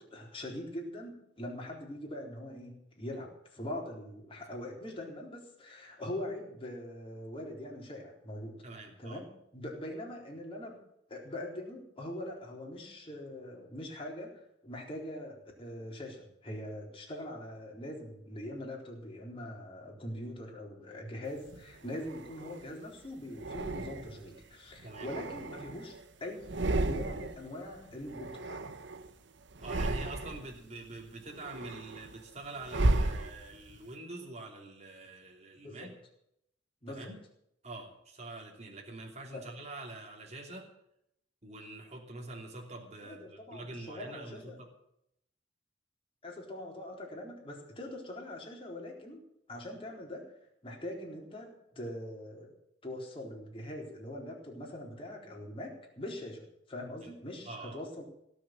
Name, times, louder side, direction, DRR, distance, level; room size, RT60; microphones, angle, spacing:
voice 1, 0.0-10.8 11.1-28.6 35.6-35.9 36.8-37.1 39.3-39.5 43.0-44.6 46.2-49.2 49.5-50.3 50.6-52.5 52.8-58.1, left 1 dB, 30° left, -1 dB, 4.0 m, -42 dB
voice 2, 8.6-9.2 24.8-25.1 29.6-35.9 36.9-37.2 37.6-40.7 41.4-44.7 57.0-57.1 57.4-57.8, right 2 dB, 35° right, 1 dB, 3.0 m, -45 dB
sound 1, 21.5-22.7 23.4-24.3 24.8-26.0 26.4-27.5 27.7-29.1 29.5-30.6 31.0-33.8, right 2 dB, 70° right, 1.0 m, -34 dB
17.5 x 6.9 x 9.1 m, 0.76 s
head